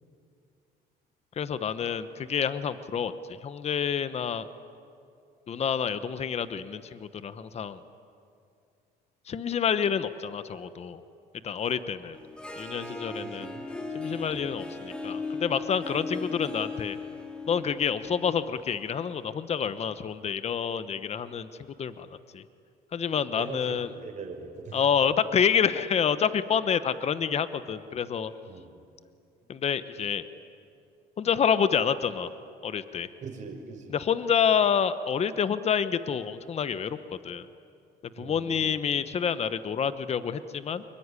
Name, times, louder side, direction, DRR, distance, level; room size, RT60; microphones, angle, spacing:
voice 1, 1.4-4.5 5.5-7.8 9.3-11.0 11.4-12.2 12.6-13.5 13.9-17.0 17.5-21.5 21.8-22.4 22.9-23.9 24.7-28.3 29.5-30.2 31.2-32.3 32.6-33.1 33.9-37.5 38.2-40.8, left 7 dB, 40° left, 13 dB, 1.0 m, -28 dB
Harp, 12.1-19.2, left 3 dB, 5° left, 2.8 m, -37 dB
voice 2, 13.2-13.7 14.2-14.4 23.3-24.8 28.4-28.7 33.2-34.0 38.1-38.8, right 4 dB, 45° right, 4 dB, 5.2 m, -42 dB
26.0 x 22.5 x 9.9 m, 2.4 s
cardioid pair, 110°, 17 cm